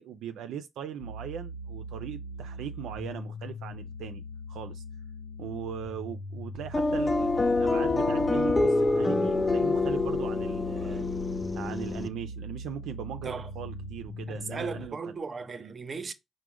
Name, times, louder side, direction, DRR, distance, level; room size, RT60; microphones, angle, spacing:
voice 1, 0.0-4.2 4.5-4.8 5.4-11.1 11.6-15.2 15.6-15.7, right 8 dB, 85° right, 0.3 m, -39 dB
sound 1, 1.0-14.9, left 1 dB, 90° left, 0.5 m, -41 dB
sound 2, 6.7-12.1, left 3 dB, 25° left, 0.4 m, -26 dB
voice 2, 14.3-16.1, right 5 dB, 40° right, 0.6 m, -37 dB
4.9 x 2.1 x 4.7 m
cardioid pair, 75°, 0 cm